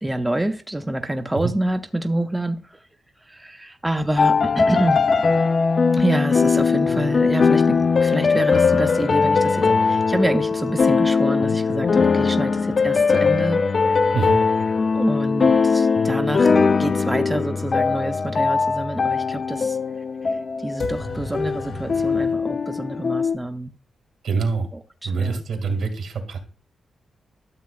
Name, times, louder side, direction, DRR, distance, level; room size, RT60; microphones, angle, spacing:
voice 1, 0.0-2.8 3.3-5.1 5.9-14.2 14.9-19.8 20.2-23.7 25.0-25.4, right 1 dB, 10° right, 0.5 m, -27 dB
sound 1, 4.2-23.4, left 5 dB, 45° left, 0.5 m, -20 dB
sound 2, 20.8-22.4, left 2 dB, 85° left, 4.2 m, -41 dB
voice 2, 24.2-24.7 25.0-26.4, right 4 dB, 80° right, 2.0 m, -25 dB
12.5 x 7.4 x 2.3 m
cardioid pair, 115°, 0 cm